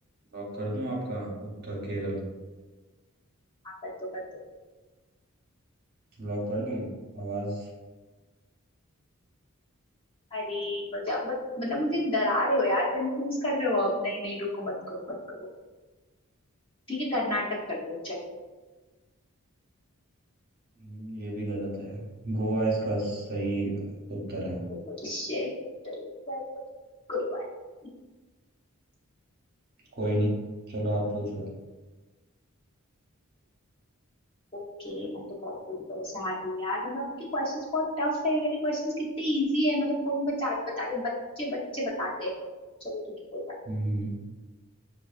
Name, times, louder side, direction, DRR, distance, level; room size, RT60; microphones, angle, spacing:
voice 1, 0.3-2.2 6.2-6.9 7.1-7.7 20.8-22.0 22.2-23.8 24.1-24.6 30.0-30.3 30.7-31.5 43.7-44.2, right 1 dB, 45° right, -3 dB, 0.9 m, -31 dB
voice 2, 3.8-4.2 10.3-15.1 16.9-17.4 17.9-18.2 24.7-25.5 25.8-26.4 27.1-27.4 34.5-41.0 41.4-42.3 42.8-43.0 43.3-43.5, left 1 dB, 25° left, -7 dB, 0.9 m, -30 dB
5.8 x 2.3 x 2.4 m, 1.3 s
head